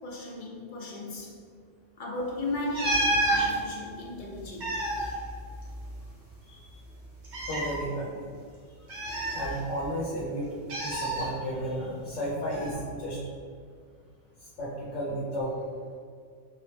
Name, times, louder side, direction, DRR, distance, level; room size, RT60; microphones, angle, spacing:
voice 1, 0.0-1.4 2.0-4.9, left 2 dB, 55° left, -2 dB, 0.6 m, -36 dB
sound 1, 2.7-3.5 4.4-6.1 6.3-6.4 7.2-7.8 8.9-9.9 10.7-11.3 12.5-12.7, right 1 dB, 65° right, 1.2 m, -29 dB
voice 2, 7.5-8.3 9.3-10.5 10.8-13.2 14.6-15.5, equal, 75° left, -7 dB, 1.1 m, -33 dB
3.6 x 3.0 x 3.2 m, 2.1 s
omnidirectional pair, 1.3 m